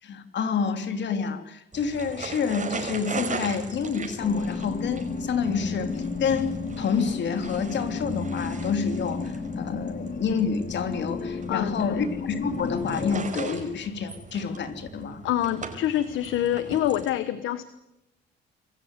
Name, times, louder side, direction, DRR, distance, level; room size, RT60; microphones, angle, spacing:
voice 1, 0.0-15.2, left 6 dB, 65° left, 8 dB, 3.3 m, -28 dB
sound 1, 1.7-17.1, right 4 dB, 40° right, 5.2 m, -39 dB
sound 2, 4.2-13.2, left 4 dB, 40° left, 2.6 m, -33 dB
voice 2, 11.5-12.0 15.2-17.6, left 12 dB, 85° left, 13 dB, 1.2 m, -26 dB
26.5 x 15.0 x 8.2 m, 0.90 s
cardioid pair, 90°, 20 cm